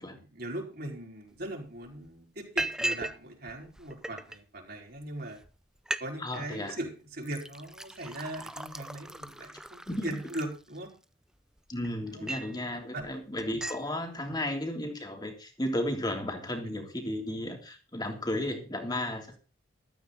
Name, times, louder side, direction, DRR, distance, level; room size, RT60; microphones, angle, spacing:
voice 1, 0.2-5.4 6.0-10.9 12.1-12.3 12.9-13.0 14.3-14.4, right 1 dB, 50° right, 0 dB, 4.8 m, -39 dB
Liquid, 1.4-1.5 1.8-2.1 2.6-3.2 3.5-4.4 5.0-5.1 5.4-5.5 5.8-6.1 6.3-6.8 7.2-11.0 11.6-12.6 13.0-13.1 13.4-13.8, right 1 dB, 5° right, 0.5 m, -37 dB
voice 2, 6.2-6.8 9.9-10.2 11.7-19.4, left 1 dB, 20° left, 3 dB, 3.2 m, -34 dB
14.5 x 13.0 x 4.1 m, 0.34 s
head